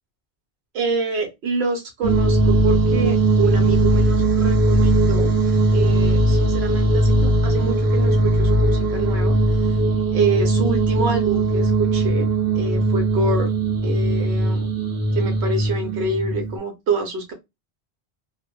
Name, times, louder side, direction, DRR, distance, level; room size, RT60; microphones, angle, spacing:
voice 1, 0.7-5.3 5.7-9.7 10.1-12.3 12.5-13.5 13.8-14.7 15.1-17.3, right 3 dB, 85° right, 1.1 m, -26 dB
sound 1, 2.0-16.6, right 2 dB, 35° right, 0.4 m, -19 dB
3.1 x 2.1 x 2.2 m
omnidirectional pair, 1.1 m